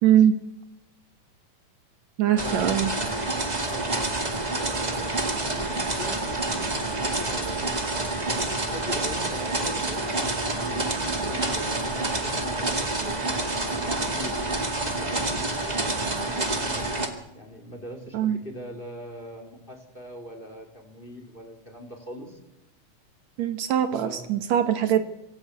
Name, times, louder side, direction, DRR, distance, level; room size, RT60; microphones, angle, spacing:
voice 1, 0.0-0.4 2.2-2.9 18.1-18.4 23.4-25.0, right 10 dB, 70° right, 9 dB, 2.4 m, -22 dB
voice 2, 2.3-2.8 3.6-4.1 4.4-7.7 8.3-14.5 14.8-16.9 17.3-22.4 23.9-24.3 24.8-25.0, equal, 15° left, 5 dB, 3.6 m, -41 dB
sound 1, 2.4-17.1, right 2 dB, 15° right, 1.9 m, -28 dB
25.5 x 15.0 x 8.2 m, 0.89 s
omnidirectional pair, 3.3 m